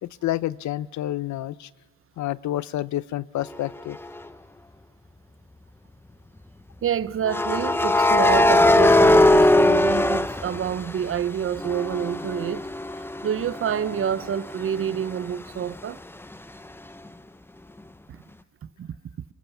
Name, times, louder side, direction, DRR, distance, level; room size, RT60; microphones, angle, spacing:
voice 1, 0.0-1.7 2.2-4.0, left 14 dB, 70° left, 0.7 m, -29 dB
sound 1, 4.0-4.2 7.3-11.2 11.6-15.1, left 1 dB, 5° left, 0.7 m, -20 dB
voice 2, 6.8-12.7 13.2-16.0 18.1-18.2 18.8-19.0, right 8 dB, 45° right, 0.7 m, -28 dB
26.5 x 24.0 x 7.1 m
cardioid pair, 90°, 30 cm